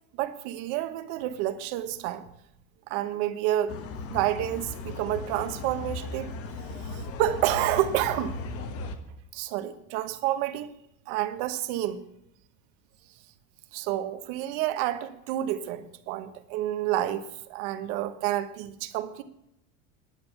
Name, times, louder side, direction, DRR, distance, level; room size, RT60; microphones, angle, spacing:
voice 1, 0.2-2.2 2.9-3.8 4.1-6.3 6.8-8.4 9.3-10.7 11.1-12.0 13.7-17.2 17.5-19.2, right 13 dB, 60° right, 1.2 m, -29 dB
sound 1, 3.7-9.0, left 3 dB, 40° left, 1.3 m, -37 dB
10.5 x 9.5 x 5.9 m
cardioid pair, 160°, 36 cm